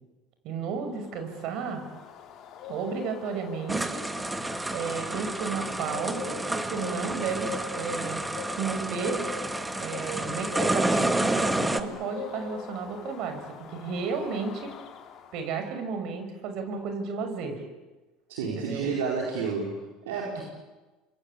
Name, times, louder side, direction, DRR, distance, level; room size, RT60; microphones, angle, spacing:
voice 1, 0.4-1.8 2.7-4.0 4.7-7.5 7.8-8.3 8.6-9.2 9.8-13.4 13.7-14.8 15.3-17.6 18.6-18.9 20.4-20.5, right 5 dB, 60° right, 7 dB, 6.2 m, -33 dB
Bird, 1.0-15.7, left 7 dB, 55° left, 4.6 m, -43 dB
sound 1, 3.7-11.8, right 2 dB, 10° right, 2.0 m, -30 dB
voice 2, 18.3-20.4, right 5 dB, 85° right, -1 dB, 4.6 m, -30 dB
27.5 x 22.5 x 8.5 m, 1.2 s
hypercardioid pair, 85°, 0 cm